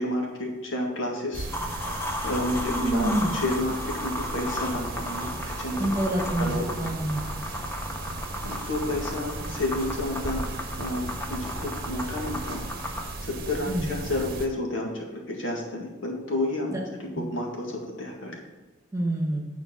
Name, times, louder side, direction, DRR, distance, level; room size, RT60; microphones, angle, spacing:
voice 1, 0.0-1.5 1.7-1.8 2.2-5.9 6.4-6.9 8.4-10.4 10.8-12.6 13.2-16.7 17.0-18.4, left 1 dB, 80° left, -1 dB, 1.9 m, -30 dB
sound 1, 1.3-14.5, right 2 dB, 50° right, 0.9 m, -36 dB
sound 2, 1.5-13.1, left 1 dB, 10° left, 0.8 m, -35 dB
voice 2, 2.7-3.3 5.8-7.2 13.7-13.9 16.7-16.8 17.1-17.2 18.9-19.4, right 1 dB, 15° right, -1 dB, 1.4 m, -27 dB
9.4 x 4.5 x 5.6 m, 1.2 s
head